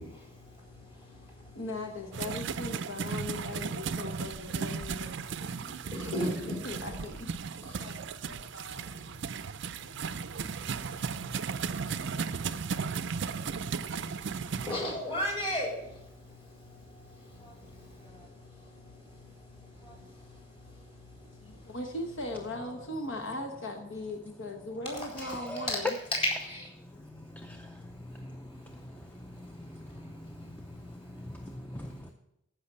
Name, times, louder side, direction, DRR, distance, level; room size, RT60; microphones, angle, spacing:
voice 1, 0.0-1.6 5.9-6.7 7.6-7.8 8.3-8.4 9.7-21.8 26.1-26.7 27.1-27.2 27.5-27.7 28.1-31.2 31.7-31.8, left 1 dB, 30° left, -2 dB, 3.9 m, -40 dB
voice 2, 1.5-5.1 5.4-7.3 7.8-9.2 21.4-26.0, left 2 dB, 65° left, 3 dB, 1.1 m, -39 dB
sound 1, 2.1-14.7, right 6 dB, 60° right, 0.4 m, -35 dB
voice 3, 25.2-25.7 27.3-27.8 28.2-28.3 29.6-30.6 31.3-32.1, equal, 10° left, 4 dB, 0.5 m, -43 dB
14.0 x 5.8 x 5.4 m, 0.83 s
head